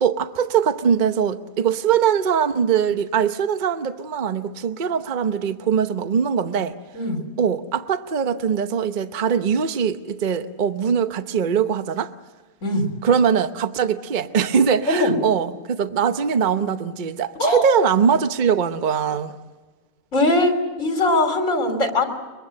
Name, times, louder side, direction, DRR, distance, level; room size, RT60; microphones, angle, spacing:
voice 1, 0.0-6.7 7.4-12.1 13.0-19.4, right 7 dB, 40° right, 0.9 m, -21 dB
voice 2, 20.1-22.1, left 1 dB, 55° left, 3.4 m, -20 dB
23.0 x 23.0 x 7.7 m
omnidirectional pair, 1.6 m